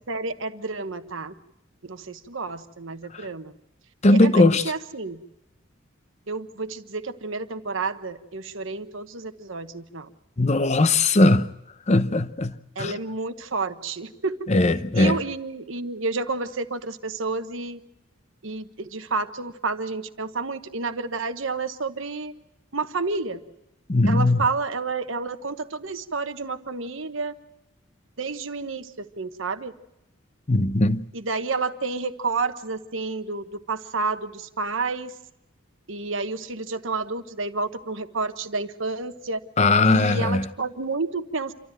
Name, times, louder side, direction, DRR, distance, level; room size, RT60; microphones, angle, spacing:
voice 1, 0.1-1.3 1.8-3.5 4.1-5.2 6.3-10.1 12.8-14.4 14.9-17.8 18.4-22.3 22.7-23.4 24.1-27.3 28.2-29.7 31.1-35.1 35.9-39.4 39.8-41.5, right 3 dB, 65° right, 1.2 m, -30 dB
voice 2, 4.0-4.6 10.4-11.5 11.9-12.5 12.8-12.9 14.5-15.2 23.9-24.4 30.5-31.0 39.6-40.4, left 2 dB, 35° left, 0.7 m, -19 dB
28.0 x 13.0 x 9.1 m
head